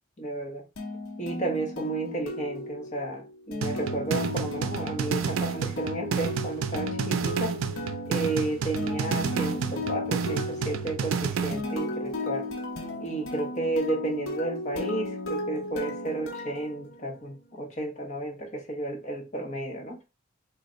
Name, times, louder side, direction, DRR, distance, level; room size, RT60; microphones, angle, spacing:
voice 1, 0.2-0.6 1.2-7.6 8.1-12.5 13.0-20.0, right 2 dB, 35° left, 1.0 m, -32 dB
sound 1, 0.8-17.4, left 2 dB, 75° left, 0.9 m, -35 dB
sound 2, 3.6-11.6, right 6 dB, 85° right, 0.4 m, -30 dB
3.2 x 2.2 x 3.8 m
head